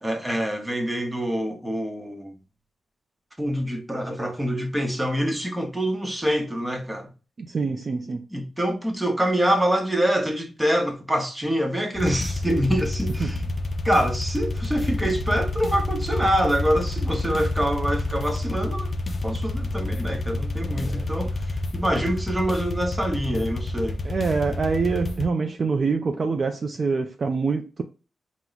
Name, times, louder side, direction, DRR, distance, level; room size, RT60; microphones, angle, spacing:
voice 1, 0.0-2.3 3.4-7.1 8.3-13.4 13.8-18.9 19.2-24.0, equal, 10° right, 0.8 m, -25 dB
voice 2, 7.4-8.2 13.2-13.3 20.8-21.3 24.0-27.8, right 4 dB, 45° right, 0.3 m, -25 dB
sound 1, 12.0-25.3, left 2 dB, 40° left, 0.4 m, -28 dB
4.4 x 2.0 x 3.8 m
wide cardioid pair, 110°, 0 cm